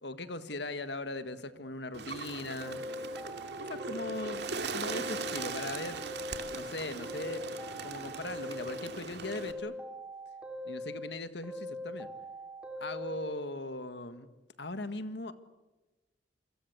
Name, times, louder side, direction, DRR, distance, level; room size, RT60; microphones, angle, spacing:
voice 1, 0.0-2.8 3.6-6.0 6.5-7.4 7.8-9.7 10.6-12.1 12.8-14.3 14.6-15.3, left 2 dB, 60° left, 11 dB, 1.7 m, -39 dB
Bird, 1.9-9.5, right 4 dB, 60° right, 2.5 m, -40 dB
sound 1, 2.6-4.5 4.8-6.7 7.0-8.9 9.2-11.1 11.4-13.3, left 1 dB, 5° right, 3.2 m, -42 dB
29.5 x 23.5 x 8.1 m, 1.1 s
head